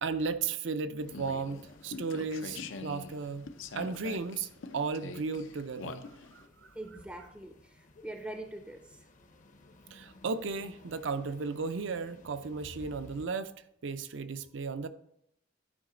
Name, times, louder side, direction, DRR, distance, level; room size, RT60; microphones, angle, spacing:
voice 1, 0.0-3.5 3.8-6.1 6.3-6.7 9.9-13.5 13.8-14.9, right 4 dB, 70° right, 12 dB, 0.5 m, -35 dB
sound 1, 1.0-13.3, left 1 dB, 40° left, 0.7 m, -57 dB
sound 2, 1.1-6.5, left 4 dB, 80° left, 0.6 m, -44 dB
voice 2, 6.7-9.0, right 1 dB, 5° right, 5 dB, 0.5 m, -43 dB
11.0 x 4.9 x 3.8 m, 0.73 s
head